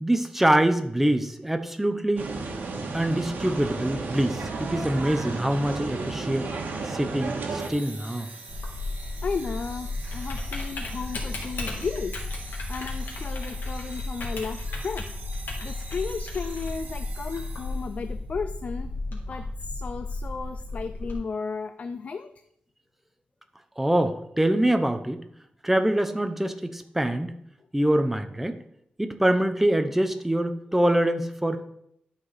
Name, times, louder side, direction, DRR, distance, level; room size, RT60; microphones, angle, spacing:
voice 1, 0.0-2.3 2.9-6.5 6.8-8.3 23.8-25.2 25.6-27.3 27.7-28.6 29.0-31.7, right 1 dB, 10° right, 8 dB, 0.7 m, -24 dB
sound 1, 2.2-7.7, right 3 dB, 85° right, 1.4 m, -32 dB
sound 2, 7.6-18.1, right 4 dB, 65° right, 1.4 m, -45 dB
Typing, 8.5-21.1, left 2 dB, 75° left, 2.2 m, -34 dB
voice 2, 9.2-15.1 15.6-22.3, left 5 dB, 45° left, 10 dB, 0.4 m, -34 dB
11.5 x 4.8 x 4.1 m, 0.73 s
wide cardioid pair, 155°, 3 cm